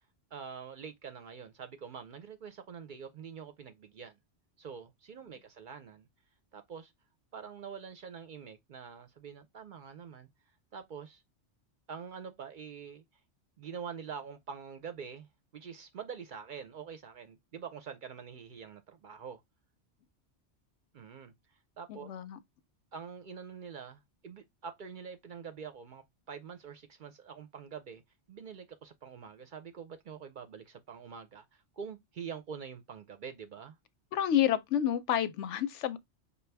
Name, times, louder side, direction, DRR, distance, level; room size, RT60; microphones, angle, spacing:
voice 1, 0.3-4.2 4.6-6.1 6.5-6.9 7.3-10.3 10.7-11.2 11.9-13.0 13.6-19.4 20.9-22.1 22.9-28.0 28.3-33.8, right 6 dB, 55° right, 0.6 m, -45 dB
voice 2, 21.9-22.4 34.1-36.0, left 10 dB, 85° left, 0.9 m, -29 dB
5.4 x 2.3 x 3.3 m
omnidirectional pair, 1.2 m